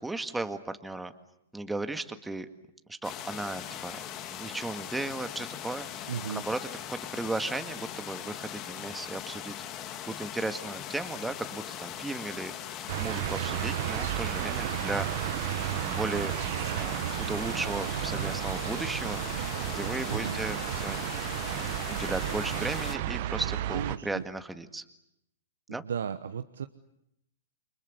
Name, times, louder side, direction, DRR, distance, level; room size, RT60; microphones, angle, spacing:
voice 1, 0.0-1.1 1.5-2.5 2.9-4.0 4.3-6.6 6.9-9.6 10.0-12.5 13.0-15.1 15.7-16.3 16.7-20.6 20.8-21.0 21.5-24.8 25.7-25.8, right 2 dB, 5° right, 8 dB, 1.9 m, -36 dB
sound 1, 3.0-23.0, left 10 dB, 35° left, 2.2 m, -40 dB
voice 2, 6.1-6.4 20.0-20.4 23.7-24.3 25.7-26.7, right 7 dB, 75° right, 10 dB, 1.1 m, -35 dB
sound 2, 12.9-24.0, right 14 dB, 55° right, 1.3 m, -32 dB
30.0 x 25.0 x 8.0 m, 0.81 s
hypercardioid pair, 115°, 0 cm